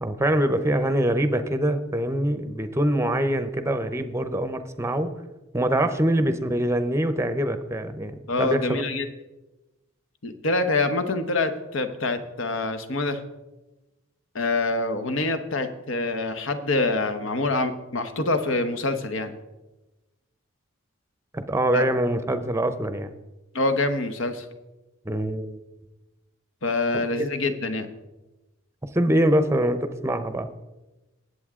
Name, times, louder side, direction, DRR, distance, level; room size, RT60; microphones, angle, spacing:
voice 1, 0.0-5.1 5.5-8.8 21.3-23.1 25.0-25.6 26.9-27.3 28.9-30.5, right 1 dB, 15° right, 10 dB, 0.7 m, -24 dB
voice 2, 8.3-9.1 10.2-13.2 14.3-19.3 21.7-21.8 23.5-24.4 26.6-27.9, left 2 dB, 65° left, 9 dB, 1.1 m, -25 dB
19.5 x 8.1 x 3.7 m, 1.1 s
head